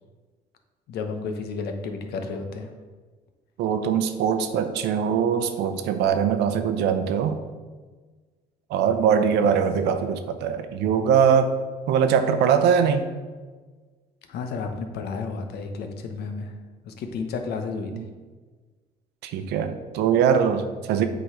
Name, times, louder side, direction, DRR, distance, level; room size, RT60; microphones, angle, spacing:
voice 1, 0.9-2.7 9.4-9.6 14.3-16.6 16.8-17.9, left 4 dB, 70° left, 5 dB, 1.0 m, -32 dB
voice 2, 3.6-7.4 8.7-11.5 11.9-13.0 19.2-21.1, right 7 dB, 85° right, 9 dB, 0.7 m, -22 dB
7.9 x 4.0 x 4.9 m, 1.4 s
cardioid pair, 110°, 17 cm